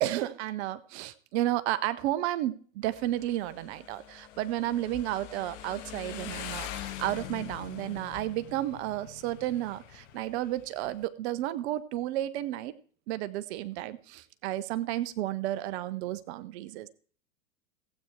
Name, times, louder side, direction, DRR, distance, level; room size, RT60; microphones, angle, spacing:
voice 1, 0.0-12.7 13.1-16.9, right 14 dB, 50° right, 14 dB, 1.0 m, -32 dB
Motorcycle, 2.8-11.1, left 12 dB, 60° left, 1.4 m, -44 dB
15.5 x 8.6 x 4.7 m, 0.43 s
hypercardioid pair, 95°, 42 cm